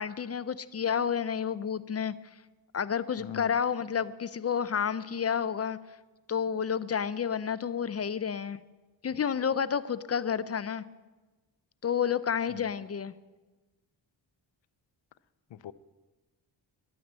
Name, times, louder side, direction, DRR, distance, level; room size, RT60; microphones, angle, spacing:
voice 1, 0.0-2.1 2.7-5.8 6.3-8.6 9.0-10.8 11.8-13.1, left 7 dB, 35° left, 16 dB, 0.4 m, -30 dB
voice 2, 3.2-3.5 12.6-12.7 15.5-15.7, left 10 dB, 90° left, 16 dB, 0.6 m, -41 dB
11.5 x 9.3 x 7.4 m, 1.2 s
wide cardioid pair, 105°, 44 cm